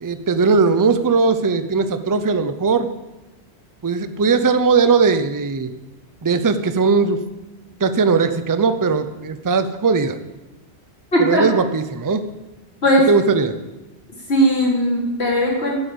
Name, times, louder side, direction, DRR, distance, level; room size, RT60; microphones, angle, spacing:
voice 1, 0.0-2.9 3.8-5.7 6.2-7.2 7.8-10.2 11.2-12.2 13.1-13.5, right 4 dB, 25° right, 10 dB, 0.5 m, -18 dB
voice 2, 11.1-11.4 12.8-13.1 14.3-15.8, equal, 75° left, -4 dB, 3.7 m, -17 dB
10.5 x 8.1 x 7.9 m, 1.1 s
omnidirectional pair, 1.1 m